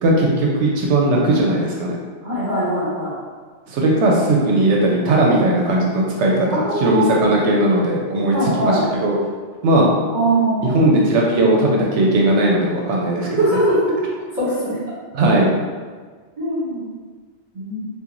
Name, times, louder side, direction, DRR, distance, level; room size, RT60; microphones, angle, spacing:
voice 1, 0.0-2.0 3.7-9.2 9.6-9.9 10.6-13.6 15.1-15.5, right 1 dB, 75° right, -2 dB, 0.9 m, -18 dB
voice 2, 2.2-3.1 6.5-7.1 8.3-8.8 10.1-10.8 13.2-13.9 14.4-14.8 16.4-16.9 17.5-17.8, right 1 dB, 40° right, -12 dB, 1.2 m, -21 dB
3.7 x 2.4 x 2.9 m, 1.5 s
omnidirectional pair, 1.2 m